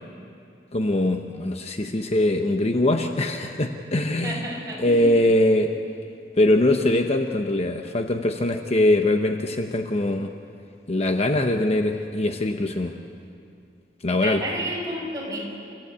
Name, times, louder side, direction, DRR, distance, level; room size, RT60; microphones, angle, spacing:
voice 1, 0.7-4.5 4.8-5.7 6.4-10.3 10.9-13.0 14.0-14.4, left 1 dB, 40° left, 5 dB, 0.9 m, -22 dB
voice 2, 4.2-5.2 14.2-15.4, right 1 dB, 20° right, -3 dB, 6.5 m, -31 dB
28.5 x 15.5 x 8.6 m, 2.5 s
head